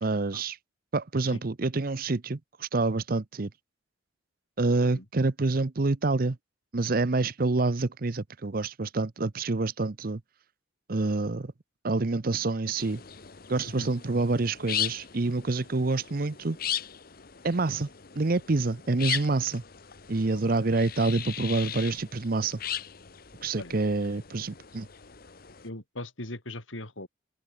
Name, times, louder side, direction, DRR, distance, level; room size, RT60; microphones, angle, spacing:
voice 1, 0.0-0.6 0.9-3.5 4.6-6.4 6.7-10.2 10.9-11.5 11.8-13.0 13.5-16.6 17.4-17.9 18.2-19.6 20.1-22.6 23.4-24.9, right 3 dB, 45° right, 0.7 m, -27 dB
sound 1, 12.8-25.7, left 10 dB, 50° left, 1.1 m, -38 dB
voice 2, 25.6-27.1, left 1 dB, 80° left, 4.5 m, -40 dB
open air
head